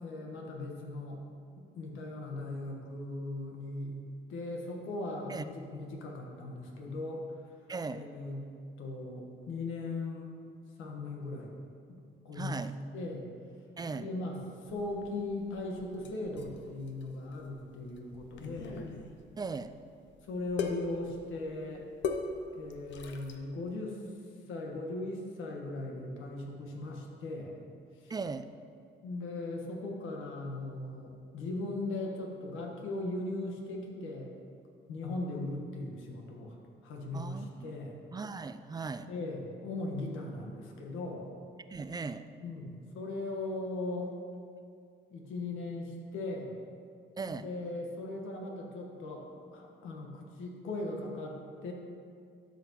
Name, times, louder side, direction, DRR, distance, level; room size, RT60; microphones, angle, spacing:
voice 1, 0.0-1.2 1.6-4.0 4.3-7.2 7.9-8.5 8.8-10.3 10.8-11.5 11.9-12.0 12.2-12.6 12.9-13.3 13.9-14.4 14.6-18.8 20.2-21.8 22.5-24.0 24.5-27.5 28.0-28.1 29.0-34.3 34.9-36.6 36.8-38.0 39.1-41.3 42.4-44.1 45.1-46.5 47.4-49.2 49.5-51.7, left 2 dB, 85° left, 0 dB, 1.4 m, -38 dB
voice 2, 7.7-8.1 12.3-12.7 13.8-14.1 19.4-19.7 28.1-28.5 37.1-37.7 38.1-39.1 41.7-42.2 47.2-47.5, right 4 dB, 20° right, 11 dB, 0.3 m, -38 dB
sound 1, 14.7-23.4, left 4 dB, 70° left, 0.7 m, -41 dB
12.0 x 5.9 x 3.0 m, 2.3 s
cardioid pair, 90°, 20 cm